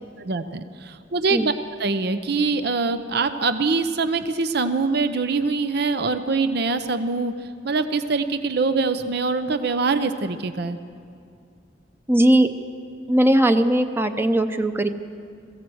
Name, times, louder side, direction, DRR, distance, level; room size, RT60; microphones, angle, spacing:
voice 1, 0.2-1.5 1.8-7.3 7.6-10.8, right 4 dB, 60° right, 10 dB, 0.7 m, -23 dB
voice 2, 12.1-12.5 13.1-14.9, right 1 dB, 10° right, 8 dB, 0.8 m, -18 dB
22.0 x 15.5 x 7.9 m, 2.4 s
head